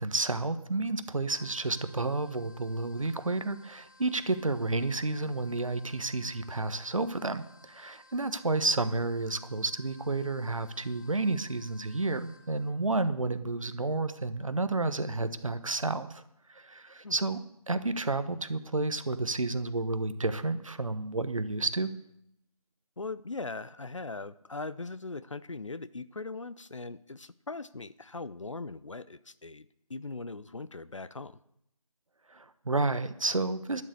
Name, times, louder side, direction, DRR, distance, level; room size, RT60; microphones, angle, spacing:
voice 1, 0.0-16.2 16.5-17.4 17.7-21.9 32.3-33.8, right 3 dB, 55° right, 12 dB, 1.0 m, -31 dB
sound 1, 1.3-12.7, left 2 dB, 30° left, 1.4 m, -58 dB
voice 2, 23.0-31.4, left 3 dB, 55° left, 16 dB, 0.6 m, -40 dB
12.0 x 6.7 x 8.3 m, 0.77 s
figure-of-eight pair, 170°, 20 cm